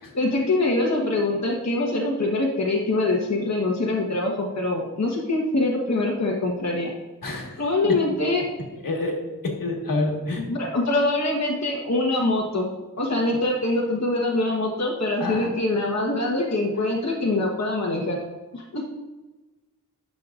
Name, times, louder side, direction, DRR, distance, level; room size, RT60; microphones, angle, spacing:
voice 1, 0.1-6.9 7.6-8.5 10.4-12.7 13.0-18.2 18.5-18.8, left 2 dB, 55° left, -1 dB, 1.2 m, -24 dB
voice 2, 7.2-7.9 8.8-9.1 9.6-10.4 15.2-15.5, left 2 dB, 75° left, 0 dB, 1.7 m, -28 dB
12.0 x 6.5 x 2.5 m, 1.2 s
cardioid pair, 55°, 33 cm